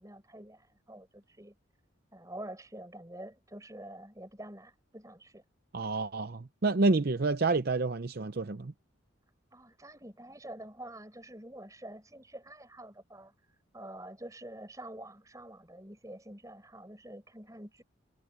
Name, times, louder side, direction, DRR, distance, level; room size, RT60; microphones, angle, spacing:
voice 1, 0.0-1.6 2.1-5.4 9.5-13.3 13.7-17.8, right 1 dB, 15° right, 5.2 m, -47 dB
voice 2, 5.7-8.7, right 3 dB, 50° right, 0.6 m, -28 dB
head